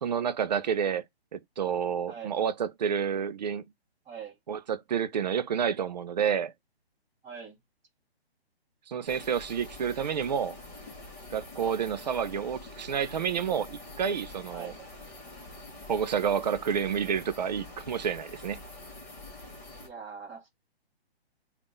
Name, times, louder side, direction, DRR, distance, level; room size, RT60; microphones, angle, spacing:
voice 1, 0.0-1.0 1.3-3.6 4.5-6.5 8.9-10.6 11.3-14.7 15.9-18.6, right 7 dB, 40° right, 0.5 m, -29 dB
voice 2, 2.1-2.5 4.0-4.4 7.2-7.6 14.5-14.9 19.8-20.5, right 7 dB, 10° right, 1.1 m, -43 dB
sound 1, 9.1-19.9, left 2 dB, 15° left, 1.0 m, -46 dB
3.7 x 2.4 x 3.7 m
hypercardioid pair, 160°, 32 cm